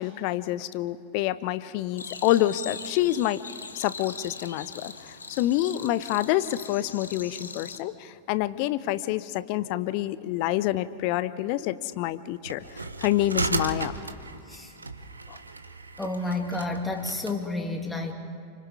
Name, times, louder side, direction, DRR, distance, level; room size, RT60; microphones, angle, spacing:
voice 1, 0.0-3.4 3.7-4.9 5.4-12.6 13.0-13.9 15.3-15.4, left 14 dB, 45° left, 15 dB, 0.8 m, -27 dB
sound 1, 2.0-7.8, left 5 dB, 75° left, 1.1 m, -41 dB
sound 2, 12.4-17.4, right 3 dB, 80° right, 1.0 m, -34 dB
voice 2, 16.0-18.1, left 2 dB, 10° left, 3 dB, 2.6 m, -30 dB
29.0 x 25.0 x 4.8 m, 2.4 s
figure-of-eight pair, 90°, 0 cm